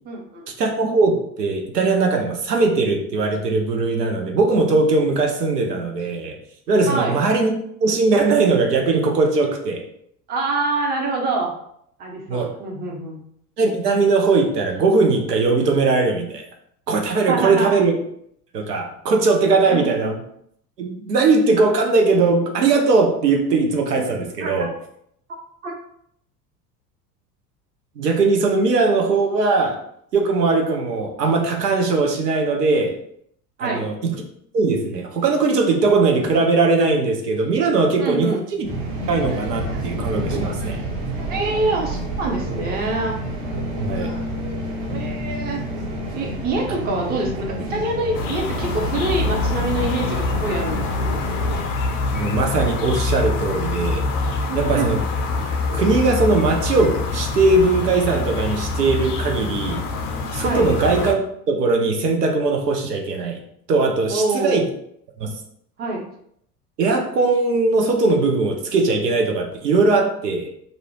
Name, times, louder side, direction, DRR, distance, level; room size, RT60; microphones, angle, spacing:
voice 1, 0.0-0.4 6.9-7.2 10.3-11.5 12.0-13.2 17.3-17.8 19.7-20.1 24.4-24.7 25.6-25.7 33.6-33.9 38.0-38.4 41.3-43.2 44.9-45.6 46.1-51.3 54.4-54.9 60.4-60.6 64.1-64.6 65.8-66.0, right 2 dB, 20° right, 0 dB, 0.5 m, -25 dB
voice 2, 0.6-6.4 6.7-7.5 7.8-9.9 12.3-12.5 13.6-16.4 16.9-17.9 18.5-20.2 20.8-24.7 28.0-29.8 30.1-33.0 33.6-34.2 34.5-38.7 39.1-40.8 43.8-44.1 52.1-54.0 54.5-55.0 55.7-59.8 60.3-63.4 63.7-64.7 65.2-65.3 66.8-70.5, right 3 dB, 85° right, 2 dB, 0.6 m, -19 dB
sound 1, 38.6-51.6, equal, 50° right, 1.2 m, -29 dB
sound 2, 48.1-61.1, left 3 dB, 50° left, 0.5 m, -25 dB
2.5 x 2.0 x 2.9 m, 0.70 s
figure-of-eight pair, 70°, 47 cm